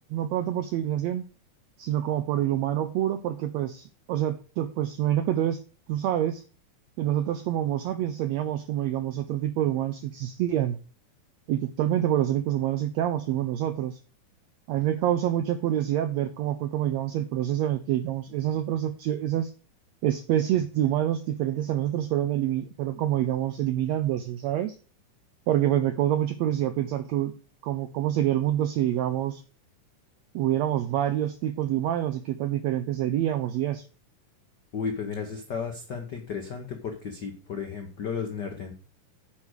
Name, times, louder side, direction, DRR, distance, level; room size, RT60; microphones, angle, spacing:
voice 1, 0.1-1.2 1.8-5.6 5.9-6.4 7.0-10.8 11.5-14.0 14.7-19.5 20.0-24.8 25.5-27.3 27.6-29.4 30.3-33.8, right 12 dB, 85° right, 9 dB, 1.5 m, -27 dB
voice 2, 34.7-38.7, left 6 dB, 80° left, 3 dB, 0.9 m, -34 dB
8.6 x 5.0 x 6.3 m, 0.37 s
omnidirectional pair, 3.8 m